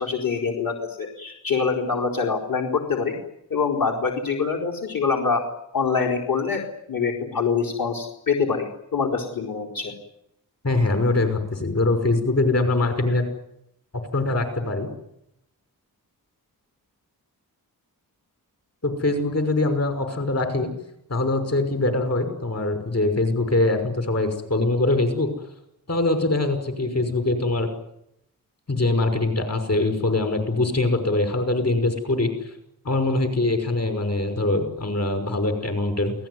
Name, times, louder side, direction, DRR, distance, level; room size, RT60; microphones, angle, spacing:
voice 1, 0.0-3.2 3.5-5.4 5.7-6.6 6.9-9.9, left 5 dB, 65° left, 0 dB, 4.6 m, -25 dB
voice 2, 10.6-13.3 14.1-14.9 18.8-20.7 21.1-25.3 25.9-27.7 28.7-32.3 32.8-36.1, left 2 dB, 45° left, 7 dB, 5.8 m, -23 dB
28.5 x 18.5 x 9.7 m, 0.79 s
wide cardioid pair, 155°, 37 cm